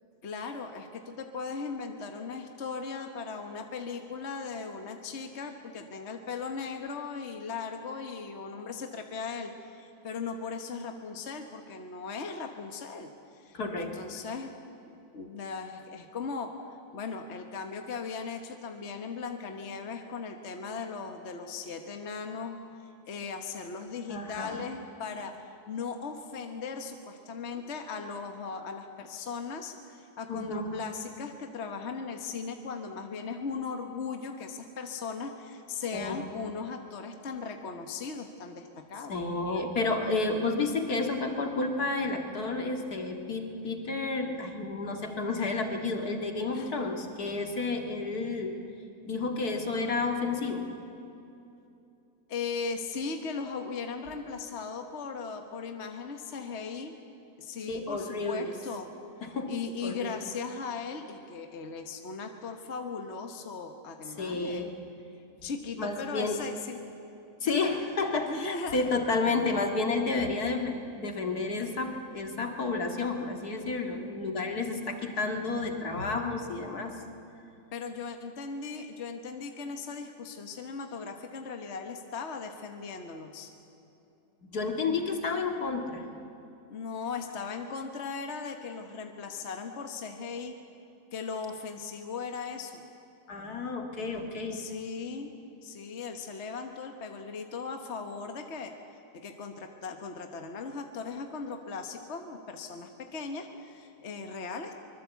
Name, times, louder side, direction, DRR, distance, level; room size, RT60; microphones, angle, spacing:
voice 1, 0.2-14.5 14.8-16.5 16.9-22.6 23.1-39.2 46.5-46.8 52.3-56.9 57.4-58.9 59.5-64.7 65.4-66.8 67.4-67.5 68.3-68.9 77.7-83.5 86.7-90.6 91.1-92.8 94.5-95.3 95.6-98.7 99.1-104.7, left 5 dB, 45° left, 5 dB, 1.5 m, -38 dB
voice 2, 13.5-13.9 24.1-24.6 30.3-30.8 35.9-36.2 39.1-48.6 49.0-50.7 57.7-58.5 59.2-59.5 59.8-60.2 64.2-64.7 65.8-66.4 67.4-77.0 84.4-86.0 93.3-94.6, left 3 dB, 65° left, 4 dB, 2.5 m, -31 dB
24.5 x 22.0 x 8.3 m, 2.8 s
omnidirectional pair, 1.7 m